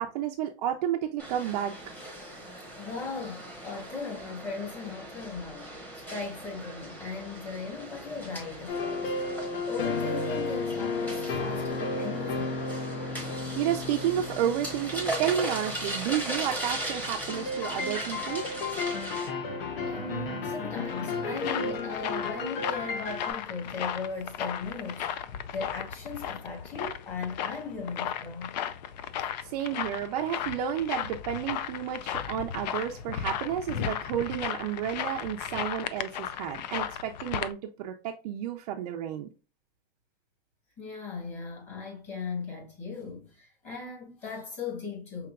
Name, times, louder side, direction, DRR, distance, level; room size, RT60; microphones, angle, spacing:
voice 1, 0.0-1.8 13.6-18.4 29.5-39.3, right 10 dB, 45° right, 0.5 m, -31 dB
sound 1, 1.2-19.3, right 1 dB, 5° left, 1.0 m, -38 dB
voice 2, 2.7-12.9 19.9-25.1 25.5-28.5 40.8-45.3, left 4 dB, 25° left, 1.6 m, -38 dB
sound 2, 8.7-16.4 17.3-23.3, left 3 dB, 70° left, 1.1 m, -33 dB
sound 3, 20.7-37.5, left 9 dB, 45° left, 0.4 m, -35 dB
5.8 x 2.8 x 2.3 m
hypercardioid pair, 150°, 29 cm